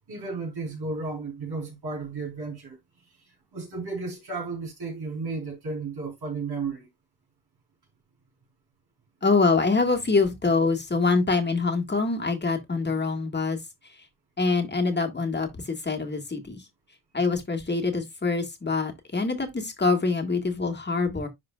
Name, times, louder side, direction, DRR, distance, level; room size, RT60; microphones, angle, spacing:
voice 1, 0.1-2.8 3.0-6.9, right 4 dB, 70° right, 4.5 m, -34 dB
voice 2, 9.2-13.6 14.4-16.6 17.1-21.3, left 4 dB, 25° left, 1.7 m, -25 dB
11.0 x 3.7 x 2.4 m
wide cardioid pair, 105°, 40 cm